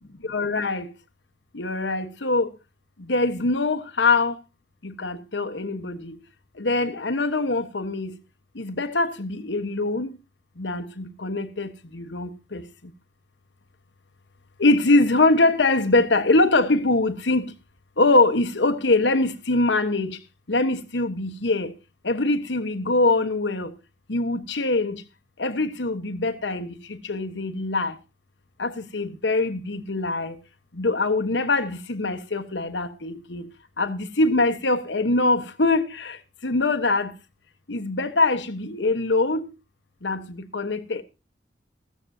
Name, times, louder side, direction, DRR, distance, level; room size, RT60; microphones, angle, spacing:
voice 1, 0.3-0.9 1.5-2.5 3.1-4.3 4.8-6.2 6.6-8.1 8.6-10.1 10.6-12.6 14.6-17.5 18.0-20.2 20.5-21.7 22.0-23.7 24.1-25.0 25.4-27.9 28.6-30.3 30.8-33.5 33.8-36.2 36.4-37.1 37.7-39.5 40.0-41.0, left 2 dB, 80° left, 1.2 m, -23 dB
15.0 x 14.5 x 2.8 m
head